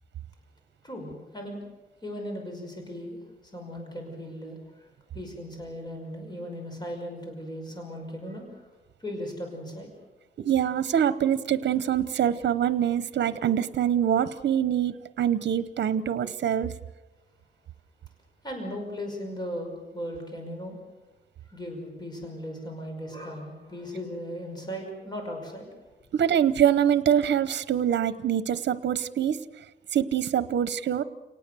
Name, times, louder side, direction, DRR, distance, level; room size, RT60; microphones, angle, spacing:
voice 1, 0.8-1.6 2.0-8.6 9.0-9.9 18.4-20.8 21.5-25.7, equal, 25° left, 2 dB, 5.7 m, -37 dB
voice 2, 10.4-16.7 26.1-29.4 29.9-31.0, right 9 dB, 75° right, 14 dB, 0.9 m, -24 dB
29.5 x 19.0 x 6.9 m, 1.2 s
wide cardioid pair, 110°, 18 cm